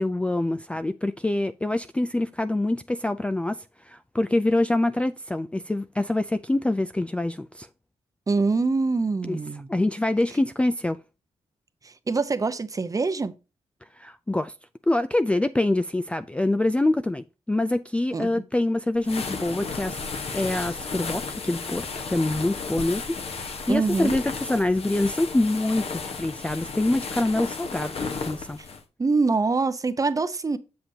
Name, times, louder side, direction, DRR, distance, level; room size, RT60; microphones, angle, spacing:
voice 1, 0.0-7.7 9.3-9.4 9.7-11.0 14.0-14.5 14.9-20.0 20.3-28.6, left 2 dB, 10° left, 0.3 m, -25 dB
voice 2, 8.3-9.7 11.8-13.3 18.1-18.3 23.7-24.2 29.0-30.6, right 4 dB, 30° right, 0.8 m, -24 dB
sound 1, 19.0-28.8, left 4 dB, 55° left, 1.2 m, -34 dB
7.7 x 6.8 x 2.8 m
cardioid pair, 90°, 12 cm